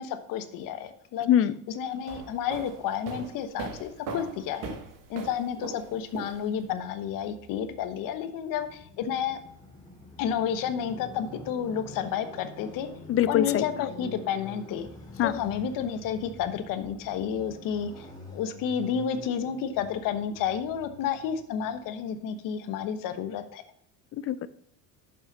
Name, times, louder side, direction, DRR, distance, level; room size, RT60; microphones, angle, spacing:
voice 1, 0.0-1.3 1.7-4.7 5.1-9.4 10.2-12.9 13.3-14.9 15.2-18.1 18.3-23.6, left 8 dB, 65° left, 10 dB, 1.2 m, -31 dB
sound 1, 1.9-6.8, right 5 dB, 60° right, 1.7 m, -40 dB
Motorcycle, 4.0-22.1, left 2 dB, 10° left, 2.4 m, -47 dB
voice 2, 13.1-13.6 15.2-15.4 24.1-24.5, left 11 dB, 40° left, 16 dB, 0.6 m, -23 dB
7.5 x 5.5 x 5.3 m, 0.68 s
supercardioid pair, 105°, 35 cm